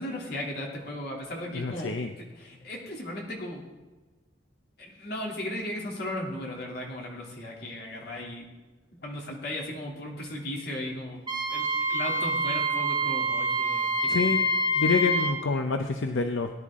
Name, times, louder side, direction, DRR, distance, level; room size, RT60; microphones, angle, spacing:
voice 1, 0.0-1.9 2.2-3.6 4.8-8.4 8.9-11.2 11.5-14.4, left 1 dB, 55° left, -2 dB, 2.9 m, -36 dB
voice 2, 1.5-2.1 14.1-14.4 14.7-16.5, left 4 dB, 80° left, 5 dB, 0.7 m, -27 dB
Wind instrument woodwind instrument, 11.3-15.4, right 1 dB, 25° right, 1.5 m, -26 dB
18.0 x 10.5 x 3.7 m, 1.3 s
head